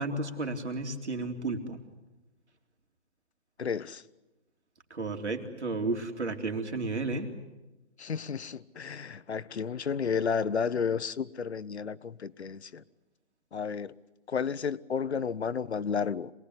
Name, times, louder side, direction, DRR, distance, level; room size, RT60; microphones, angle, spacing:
voice 1, 0.0-1.8 4.9-7.3, right 3 dB, 80° right, 3.8 m, -32 dB
voice 2, 3.6-4.0 8.0-12.8 13.5-13.9 14.3-16.3, left 6 dB, 70° left, 1.0 m, -32 dB
27.5 x 19.5 x 9.8 m
hypercardioid pair, 160°, 34 cm